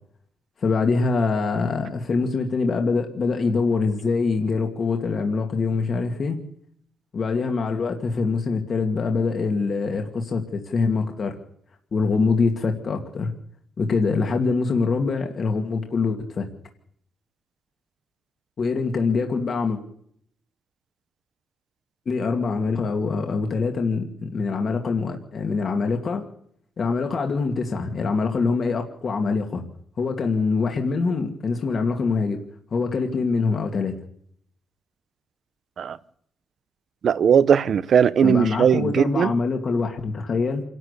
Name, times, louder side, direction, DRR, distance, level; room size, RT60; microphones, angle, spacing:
voice 1, 0.6-6.4 7.1-11.3 11.9-13.3 13.8-16.5 18.6-19.8 22.1-26.3 26.8-29.6 30.0-32.4 32.7-33.9 38.2-40.6, left 4 dB, 40° left, 2.3 m, -24 dB
voice 2, 37.0-39.3, right 8 dB, 55° right, 0.9 m, -18 dB
28.0 x 12.0 x 8.3 m
cardioid pair, 125°, 0 cm